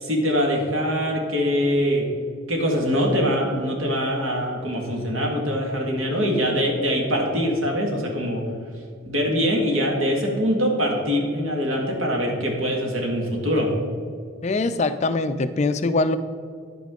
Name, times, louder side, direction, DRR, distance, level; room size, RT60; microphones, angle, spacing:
voice 1, 0.0-2.1 2.5-8.4 9.1-13.7, equal, 75° right, 0 dB, 1.9 m, -23 dB
voice 2, 14.4-16.2, left 3 dB, 35° left, 11 dB, 0.3 m, -22 dB
10.0 x 8.6 x 3.8 m, 2.2 s
head